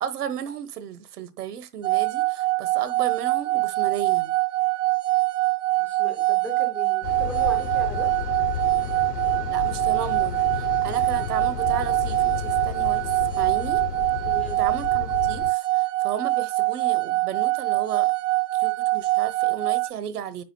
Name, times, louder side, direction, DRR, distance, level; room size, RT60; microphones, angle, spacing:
voice 1, 0.0-4.3 9.5-13.8 14.6-18.1 18.5-20.4, right 9 dB, 70° right, 1.2 m, -34 dB
sound 1, 1.8-19.9, right 20 dB, 50° right, 0.6 m, -24 dB
voice 2, 5.8-8.1 14.3-14.6, equal, 5° right, 0.4 m, -37 dB
sound 2, 7.0-15.5, left 8 dB, 80° left, 1.0 m, -32 dB
10.0 x 7.1 x 2.2 m
hypercardioid pair, 135°, 48 cm